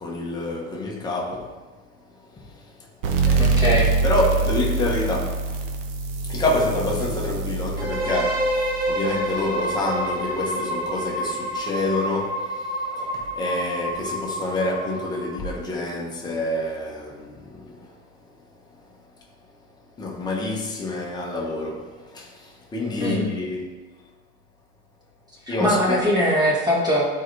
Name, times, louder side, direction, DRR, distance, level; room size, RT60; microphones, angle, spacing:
voice 1, 0.0-1.5 2.3-2.9 3.2-3.5 4.0-5.4 6.3-17.9 20.0-23.7 25.5-26.0, left 2 dB, 10° left, 1.0 m, -27 dB
sound 1, 3.0-10.3, right 3 dB, 65° right, 1.0 m, -25 dB
voice 2, 3.4-4.0 23.0-23.3 25.5-27.1, equal, 10° right, 1.5 m, -21 dB
sound 2, 7.8-15.6, right 1 dB, 25° right, 1.2 m, -28 dB
11.5 x 4.7 x 3.2 m
cardioid pair, 170°, 33 cm